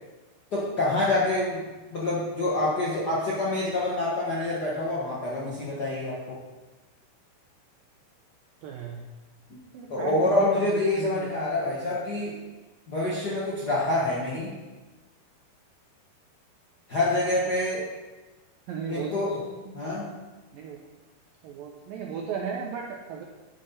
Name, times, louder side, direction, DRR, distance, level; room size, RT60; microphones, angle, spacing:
voice 1, 0.5-6.4 9.9-12.4 12.9-14.5 16.9-17.8 18.9-19.4 19.7-20.1, left 2 dB, 60° left, -6 dB, 1.0 m, -26 dB
voice 2, 8.6-9.0 9.7-11.9 18.7-19.8 20.5-20.8 21.4-23.2, right 6 dB, 75° right, 1 dB, 2.2 m, -36 dB
11.5 x 9.8 x 4.2 m, 1.2 s
omnidirectional pair, 4.9 m